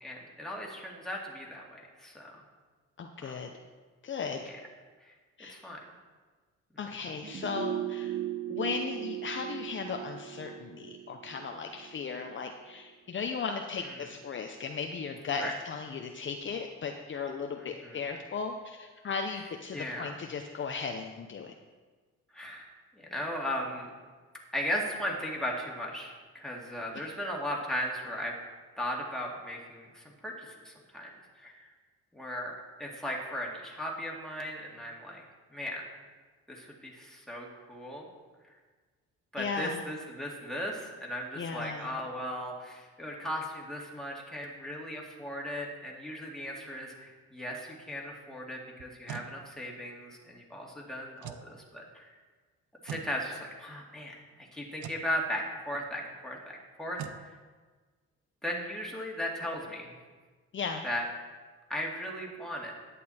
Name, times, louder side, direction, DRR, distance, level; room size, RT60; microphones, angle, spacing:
voice 1, 0.0-2.4 3.2-3.4 4.4-4.6 5.0-5.1 5.5-5.8 13.8-14.0 15.4-15.5 17.6-18.0 19.7-20.1 22.3-22.7 23.1-23.9 24.5-28.3 28.8-31.1 31.4-31.7 32.1-32.5 32.8-35.2 35.5-35.8 36.5-38.1 39.3-52.1 52.8-57.0 58.4-59.9 60.8-61.1 61.7-62.8, equal, ahead, -2 dB, 2.3 m, -37 dB
voice 2, 3.0-3.5 4.0-4.4 5.4-5.6 6.8-8.2 8.5-21.5 39.4-39.8 41.4-41.9 60.5-60.8, left 5 dB, 40° left, 4 dB, 0.7 m, -36 dB
sound 1, 7.2-12.4 12.7-12.8, right 12 dB, 35° right, 0.5 m, -38 dB
sound 2, 48.8-49.3 51.2-51.5 52.9-53.1 54.8-55.1 57.0-57.2, right 10 dB, 85° right, 0.7 m, -41 dB
10.5 x 8.4 x 4.3 m, 1.4 s
cardioid pair, 90°, 30 cm